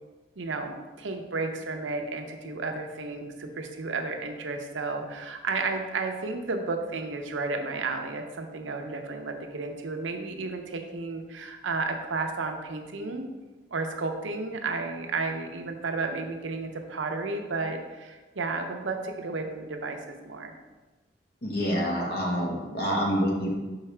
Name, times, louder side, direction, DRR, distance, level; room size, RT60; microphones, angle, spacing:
voice 1, 0.4-13.2 13.7-20.5, right 3 dB, 80° right, 4 dB, 0.7 m, -32 dB
voice 2, 21.4-23.5, equal, 55° left, -2 dB, 1.2 m, -27 dB
6.2 x 4.7 x 3.3 m, 1.2 s
head